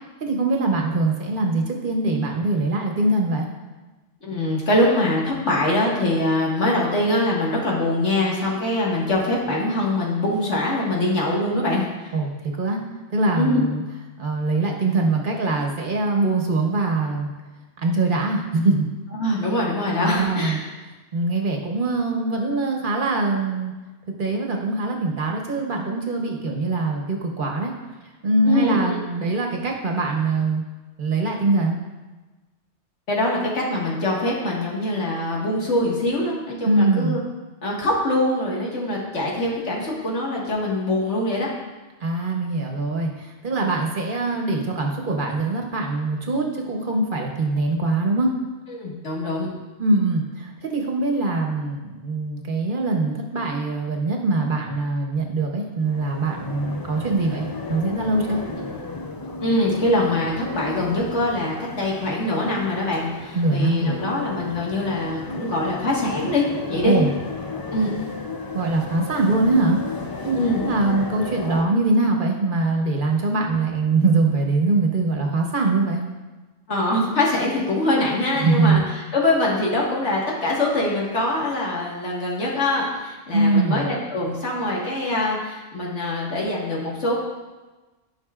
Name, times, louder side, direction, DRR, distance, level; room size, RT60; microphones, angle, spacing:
voice 1, 0.2-3.5 12.1-12.8 13.1-13.8 14.2-17.3 17.8-18.9 20.0-20.6 21.1-23.7 24.2-27.7 28.2-30.6 31.0-31.8 36.6-37.2 42.0-48.3 49.8-58.4 63.3-64.0 66.8-67.1 68.5-69.8 70.2-76.0 78.4-78.8 83.3-83.9, right 2 dB, 50° right, 1 dB, 1.1 m, -22 dB
voice 2, 4.2-12.1 13.4-13.6 19.2-20.6 28.4-29.0 33.1-37.2 37.6-41.5 48.7-49.5 58.5-58.6 59.4-67.0 67.7-67.9 70.4-70.6 76.7-87.2, left 1 dB, 85° left, -4 dB, 2.0 m, -23 dB
sound 1, 55.8-71.6, left 3 dB, 35° left, 0.3 m, -34 dB
12.0 x 5.5 x 2.4 m, 1.2 s
omnidirectional pair, 1.2 m